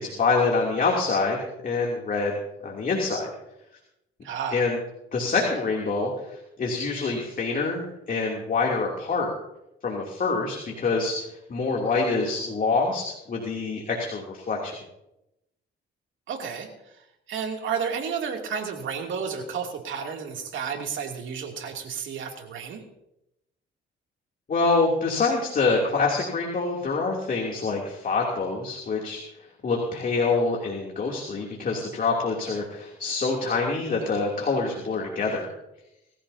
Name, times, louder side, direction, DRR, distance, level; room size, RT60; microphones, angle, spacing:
voice 1, 0.0-1.4 1.6-3.3 4.5-4.8 5.1-9.3 9.8-11.1 11.5-14.8 24.5-29.2 29.6-35.5, left 4 dB, 45° left, -1 dB, 3.0 m, -26 dB
voice 2, 4.2-4.7 16.3-16.7 17.3-22.8 29.7-29.8, right 6 dB, 75° right, 2 dB, 2.8 m, -31 dB
22.5 x 15.0 x 2.8 m, 0.86 s
cardioid pair, 90°, 20 cm